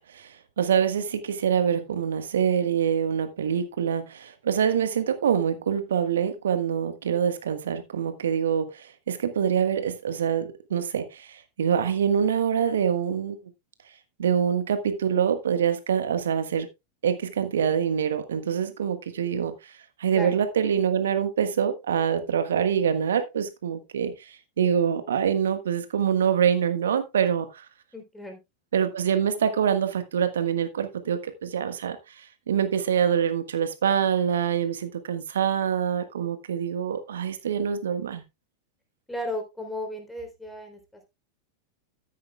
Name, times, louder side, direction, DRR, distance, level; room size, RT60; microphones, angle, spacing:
voice 1, 0.1-13.4 14.2-16.7 17.0-19.7 20.0-27.6 28.7-38.2, right 8 dB, 65° right, 1.5 m, -25 dB
voice 2, 27.9-28.4 39.1-41.1, left 1 dB, 5° left, 3.5 m, -35 dB
13.5 x 9.4 x 2.3 m
figure-of-eight pair, 90°, 0 cm